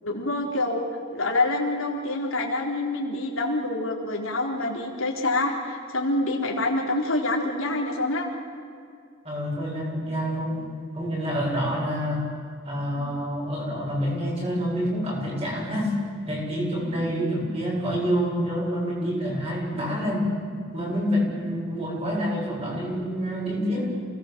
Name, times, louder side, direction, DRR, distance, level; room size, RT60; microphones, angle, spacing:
voice 1, 0.0-0.8 1.1-8.3 17.0-17.1, left 2 dB, 75° left, 0 dB, 4.0 m, -26 dB
voice 2, 9.2-10.7 10.9-12.2 12.6-15.9 16.3-20.3 20.7-23.9, equal, 30° right, -3 dB, 7.8 m, -27 dB
28.5 x 19.5 x 7.7 m, 2.2 s
head